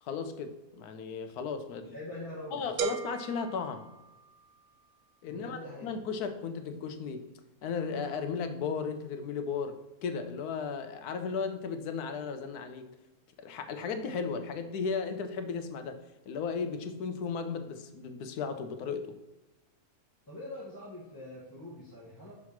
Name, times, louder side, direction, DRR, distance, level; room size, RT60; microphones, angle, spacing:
voice 1, 0.0-1.9 2.5-3.9 5.2-7.3 7.6-12.9 13.4-16.0 16.3-19.2, left 5 dB, 90° left, 9 dB, 1.2 m, -35 dB
voice 2, 1.8-2.8 5.2-6.0 20.3-22.3, left 1 dB, 15° left, -6 dB, 1.1 m, -44 dB
sound 1, 2.8-4.7, right 8 dB, 75° right, 1.0 m, -37 dB
6.0 x 3.7 x 5.8 m, 1.0 s
omnidirectional pair, 1.6 m